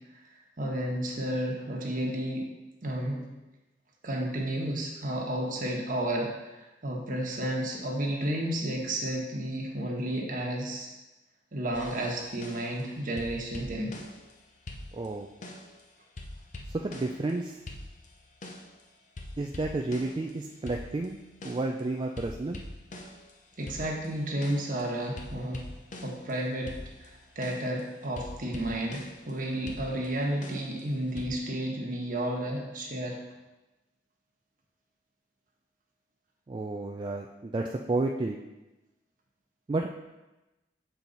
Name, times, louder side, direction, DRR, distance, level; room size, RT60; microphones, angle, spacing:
voice 1, 0.6-2.5 2.8-3.3 4.0-10.9 11.5-13.9 23.6-25.7 26.0-26.7 27.0-33.2, right 1 dB, 50° right, -1 dB, 1.2 m, -32 dB
sound 1, 11.7-12.9 13.2-14.4 14.7-15.8 16.2-17.4 17.7-18.8 19.2-21.8 22.2-26.3 26.7-29.3 29.7-31.3, left 1 dB, 45° left, 0.7 m, -44 dB
voice 2, 14.9-15.3 16.7-17.5 19.4-21.2 21.4-22.6 36.5-38.4 39.7-39.9, right 2 dB, 25° right, 2 dB, 0.3 m, -31 dB
7.0 x 4.5 x 3.9 m, 1.1 s
head